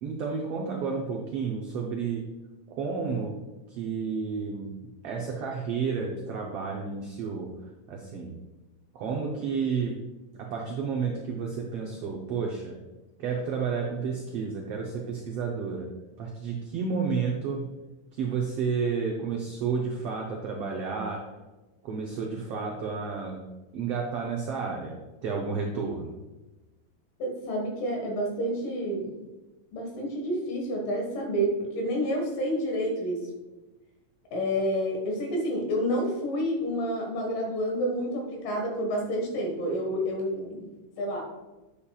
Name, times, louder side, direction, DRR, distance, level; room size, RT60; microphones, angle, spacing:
voice 1, 0.0-2.3 2.7-3.4 3.7-4.8 5.0-7.5 7.9-8.4 8.9-10.0 10.3-12.8 13.2-15.9 16.2-17.7 18.1-21.3 21.8-23.4 23.7-26.1, right 5 dB, 85° right, -1 dB, 1.3 m, -31 dB
voice 2, 27.2-29.1 29.7-33.3 34.3-40.7 41.0-41.2, equal, 80° left, 0 dB, 3.2 m, -29 dB
8.5 x 7.1 x 2.3 m, 1.1 s
omnidirectional pair, 3.8 m